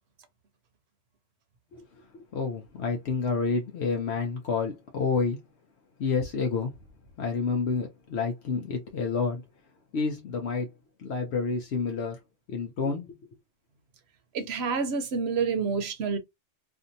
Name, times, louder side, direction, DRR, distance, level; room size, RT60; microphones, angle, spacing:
voice 1, 2.3-5.4 6.0-6.7 7.2-9.4 9.9-10.7 11.0-12.2 12.5-13.2, left 5 dB, 75° left, 0.9 m, -29 dB
voice 2, 14.3-16.2, right 5 dB, 75° right, 0.9 m, -28 dB
2.7 x 2.5 x 2.6 m
omnidirectional pair, 1.1 m